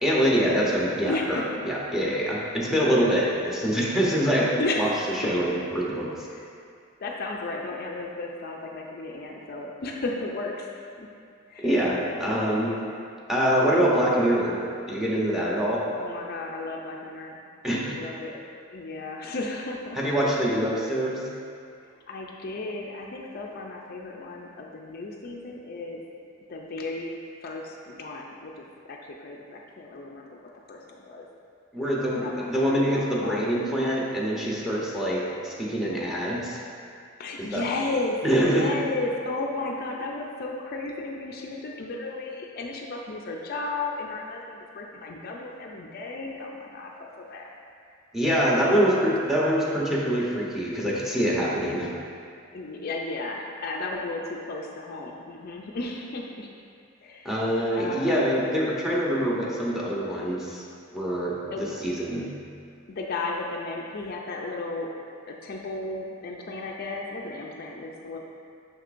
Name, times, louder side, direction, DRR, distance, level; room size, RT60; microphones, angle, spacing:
voice 1, 0.0-4.5 4.8-4.9 5.2-6.1 11.6-12.7 13.3-14.6 14.9-15.8 17.6-18.0 20.0-21.2 31.7-36.6 37.5-37.6 38.2-38.7 48.1-51.9 57.2-60.6 60.9-62.3, equal, ahead, -5 dB, 0.8 m, -25 dB
voice 2, 1.1-1.6 4.6-5.4 6.3-6.5 7.0-10.7 11.0-11.1 11.5-11.7 16.0-17.4 17.9-18.4 18.7-20.0 22.1-26.0 26.5-27.1 27.4-31.3 32.2-32.5 32.9-33.5 37.2-47.5 52.5-56.5 57.0-57.3 57.7-58.3 61.5-61.7 62.9-64.9 65.3-68.2, left 2 dB, 50° left, 0 dB, 0.4 m, -34 dB
6.5 x 5.9 x 2.5 m, 2.3 s
head